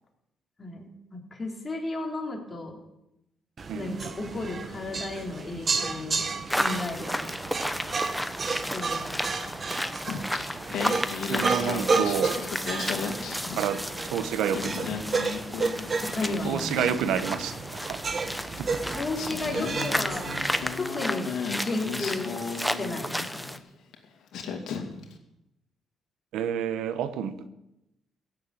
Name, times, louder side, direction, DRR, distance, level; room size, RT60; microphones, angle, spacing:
voice 1, 0.6-2.8 3.7-7.3 8.7-9.2 16.0-16.8 18.9-20.4 20.8-21.3 21.6-23.6, left 2 dB, 30° left, 0 dB, 3.9 m, -34 dB
sound 1, 3.6-20.8, right 4 dB, 40° right, 1.4 m, -32 dB
sound 2, 6.5-23.6, equal, ahead, 1.0 m, -33 dB
Singing, 10.1-14.0 14.3-17.6 18.6-18.7 19.1-23.3 23.9-24.1 24.3-25.1, left 6 dB, 80° left, 2.4 m, -35 dB
voice 2, 11.3-12.4 13.6-13.8 14.1-14.9 16.4-17.5 17.8-18.0 18.6-18.8 26.3-27.5, right 8 dB, 85° right, 12 dB, 1.0 m, -29 dB
16.0 x 7.3 x 8.6 m, 0.88 s
cardioid pair, 90°, 0 cm